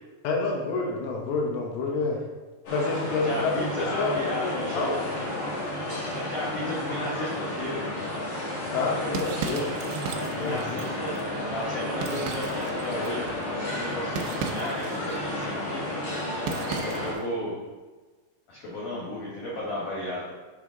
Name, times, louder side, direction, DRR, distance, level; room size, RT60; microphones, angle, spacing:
voice 1, 0.2-2.2 2.7-5.1 8.7-9.6 10.4-10.8, left 4 dB, 90° left, 0 dB, 3.6 m, -28 dB
sound 1, 2.6-17.1, left 1 dB, 45° left, 2.0 m, -32 dB
voice 2, 3.2-5.2 6.1-7.8 8.8-9.1 10.2-13.3 13.7-15.8 16.7-17.6 18.5-20.3, left 1 dB, 65° left, -6 dB, 2.1 m, -34 dB
sound 2, 8.7-17.3, right 6 dB, 85° right, 2.5 m, -38 dB
7.8 x 6.0 x 3.8 m, 1.3 s
omnidirectional pair, 5.5 m